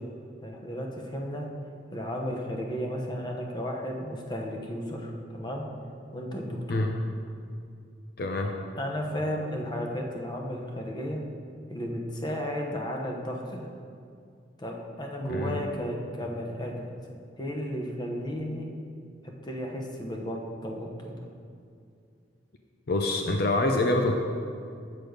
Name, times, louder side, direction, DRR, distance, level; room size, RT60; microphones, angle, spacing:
voice 1, 0.4-1.5 1.9-5.7 6.1-6.9 8.4-8.5 8.8-11.2 11.7-13.7 14.6-16.9 17.4-18.7 19.2-21.3, equal, 25° left, 1 dB, 0.9 m, -34 dB
voice 2, 8.2-8.5 15.2-15.6 22.9-24.2, left 2 dB, 55° left, 3 dB, 0.5 m, -26 dB
8.0 x 6.7 x 5.2 m, 2.3 s
head